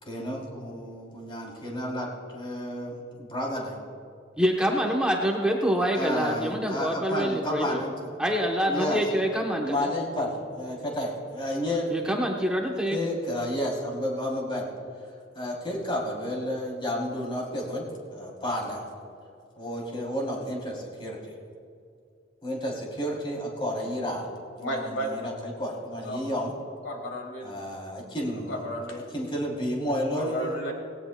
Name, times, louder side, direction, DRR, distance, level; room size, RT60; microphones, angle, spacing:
voice 1, 0.0-3.8 5.9-7.9 8.7-9.0 9.6-11.9 12.9-14.7 15.3-18.8 19.6-21.3 22.4-24.3 24.6-26.5 27.4-28.6 29.1-30.6, equal, 25° left, -3 dB, 3.1 m, -31 dB
voice 2, 4.4-7.8 8.2-9.9 11.9-13.0, equal, 5° right, 0 dB, 0.9 m, -26 dB
voice 3, 24.6-25.2 26.0-26.2 26.8-27.5 28.5-29.0 30.1-30.7, equal, 85° left, 0 dB, 2.4 m, -33 dB
18.5 x 18.0 x 2.3 m, 2.4 s
head